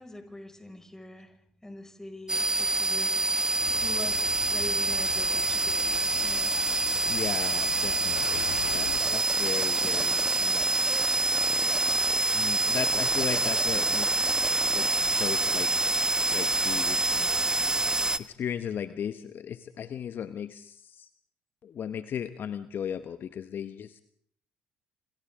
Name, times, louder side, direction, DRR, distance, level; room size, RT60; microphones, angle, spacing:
voice 1, 0.0-1.3 1.6-3.2 3.7-6.5 9.8-9.9, left 1 dB, 10° left, 5 dB, 5.6 m, -43 dB
sound 1, 2.3-18.2, right 2 dB, 15° right, 1.2 m, -26 dB
sound 2, 3.6-9.0, left 11 dB, 85° left, 1.3 m, -41 dB
voice 2, 7.1-10.1 10.4-10.6 12.3-14.4 14.7-15.7 16.3-17.3 18.2-21.1 21.6-24.0, left 8 dB, 50° left, 11 dB, 1.0 m, -36 dB
27.0 x 26.5 x 3.7 m, 0.63 s
hypercardioid pair, 60°, 4 cm